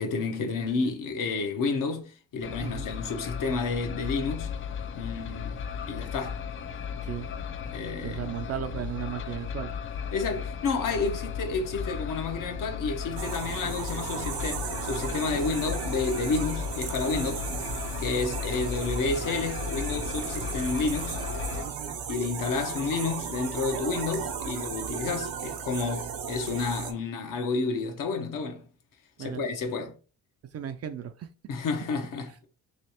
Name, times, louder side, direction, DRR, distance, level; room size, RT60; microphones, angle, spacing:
voice 1, 0.0-4.5 5.0-6.4 7.7-8.3 10.1-17.5 18.0-21.2 22.1-28.6 29.2-30.0 31.5-32.3, left 4 dB, 60° left, 0.9 m, -30 dB
sound 1, 2.4-21.6, left 7 dB, 35° left, 0.4 m, -35 dB
voice 2, 8.0-9.7 16.5-16.6 18.2-18.4 21.6-22.0 29.2-29.4 30.5-31.3 32.3-32.4, right 9 dB, 45° right, 0.4 m, -36 dB
sound 2, 13.2-26.9, right 7 dB, 75° right, 0.8 m, -35 dB
3.2 x 3.1 x 2.9 m
cardioid pair, 85°, 36 cm